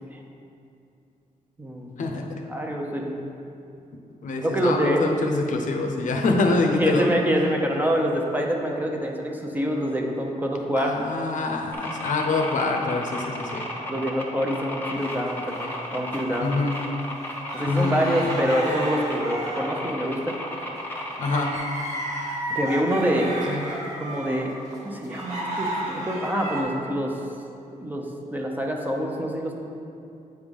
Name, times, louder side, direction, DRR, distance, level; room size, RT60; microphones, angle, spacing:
voice 1, 1.6-1.9 2.5-3.2 4.4-5.1 6.8-10.9 13.9-16.6 17.5-20.4 22.5-23.4 24.0-24.5 24.8-27.2 27.8-29.6, equal, 15° right, 0 dB, 0.7 m, -26 dB
voice 2, 4.2-7.1 10.8-13.6 16.4-16.8 17.7-18.4 21.2-21.5 23.5-23.7, left 3 dB, 70° left, 2 dB, 0.7 m, -25 dB
sound 1, 11.7-21.6, left 1 dB, 15° left, 0.9 m, -34 dB
sound 2, 14.9-16.2 16.6-26.6, right 1 dB, 65° right, 1.5 m, -33 dB
8.1 x 3.4 x 5.2 m, 2.6 s
cardioid pair, 110°, 14 cm